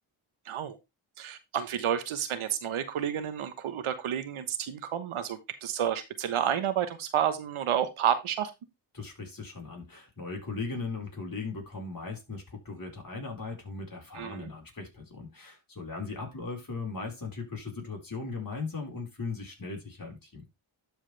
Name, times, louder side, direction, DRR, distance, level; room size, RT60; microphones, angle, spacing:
voice 1, 0.4-0.8 1.2-8.5 14.1-14.5, right 9 dB, 85° right, 1.2 m, -30 dB
voice 2, 8.9-20.5, left 4 dB, 45° left, 4.6 m, -38 dB
11.5 x 4.9 x 3.3 m
cardioid pair, 50°, 48 cm